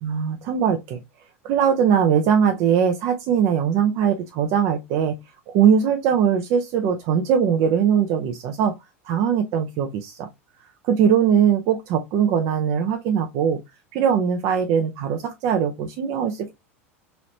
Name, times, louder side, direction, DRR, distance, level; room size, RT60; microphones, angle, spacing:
voice 1, 0.0-1.0 1.4-5.2 5.5-8.7 9.0-10.3 10.8-13.6 13.9-16.5, right 8 dB, 50° right, 0.5 m, -21 dB
3.0 x 2.9 x 2.6 m
hypercardioid pair, 85°, 7 cm